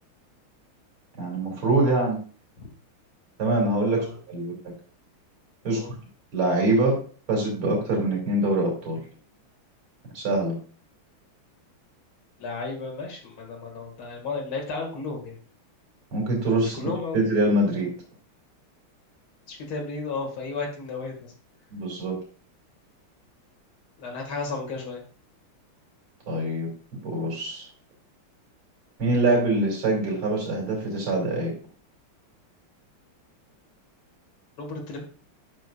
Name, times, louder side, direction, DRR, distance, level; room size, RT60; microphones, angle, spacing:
voice 1, 1.2-2.2 3.4-4.7 5.6-5.9 6.3-7.0 7.3-9.0 10.1-10.6 16.1-16.8 17.1-17.9 21.7-22.2 26.3-26.7 27.0-27.7 29.0-31.5, right 2 dB, 75° right, -1 dB, 3.2 m, -24 dB
voice 2, 12.4-15.4 16.6-17.2 19.5-21.3 24.0-25.0 34.6-35.0, left 4 dB, 70° left, 0 dB, 2.9 m, -33 dB
10.5 x 6.3 x 2.5 m, 0.41 s
omnidirectional pair, 2.3 m